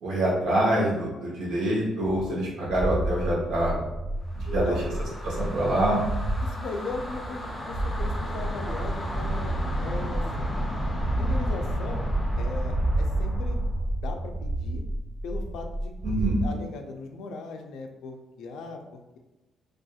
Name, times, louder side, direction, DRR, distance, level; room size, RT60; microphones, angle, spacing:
voice 1, 0.0-3.8 4.5-4.8 5.2-6.0 16.0-16.4, right 1 dB, 80° right, -4 dB, 0.9 m, -25 dB
sound 1, 2.3-6.5 6.9-11.5 11.9-12.4 12.7-16.5, right 1 dB, 50° right, 0.3 m, -31 dB
sound 2, 4.3-14.1, right 1 dB, 15° left, 0.5 m, -31 dB
voice 2, 4.5-4.9 6.4-9.6 9.8-10.5 11.2-12.1 12.4-13.7 14.0-14.8 15.2-19.2, left 3 dB, 80° left, 4 dB, 0.3 m, -38 dB
2.7 x 2.4 x 2.3 m, 1.1 s
cardioid pair, 90°, 0 cm